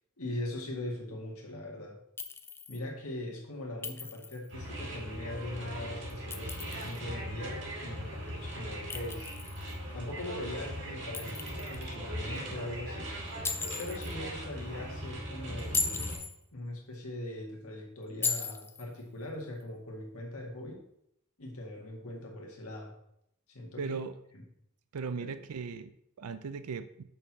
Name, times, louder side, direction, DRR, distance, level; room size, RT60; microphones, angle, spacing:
voice 1, 0.2-2.0 2.7-9.3 9.9-13.1 13.8-16.2 16.5-20.8 21.4-22.9 23.5-23.8 24.3-24.4 25.2-25.4, left 1 dB, 70° left, 0 dB, 2.1 m, -41 dB
Chink clink, 2.2-2.8 3.8-4.5 6.1-7.0 8.9-9.8 11.1-11.9 13.4-14.1 15.6-16.4 18.2-18.9, left 4 dB, 10° left, 0.4 m, -36 dB
sound 1, 4.5-16.2, equal, 55° right, 2.4 m, -40 dB
voice 2, 23.8-24.1 24.9-27.0, right 5 dB, 80° right, 12 dB, 0.5 m, -38 dB
6.6 x 4.6 x 6.0 m, 0.75 s
head